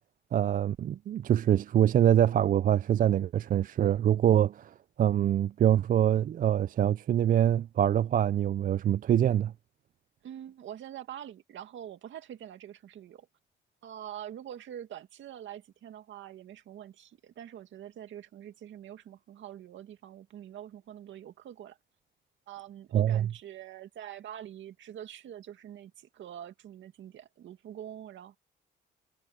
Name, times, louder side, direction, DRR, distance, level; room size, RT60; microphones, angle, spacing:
voice 1, 0.3-4.7 5.0-9.5 22.9-23.3, right 10 dB, 45° right, 0.4 m, -24 dB
voice 2, 10.2-13.3 13.8-21.8 22.5-28.4, right 10 dB, 70° right, 2.2 m, -45 dB
cardioid pair, 90°, 20 cm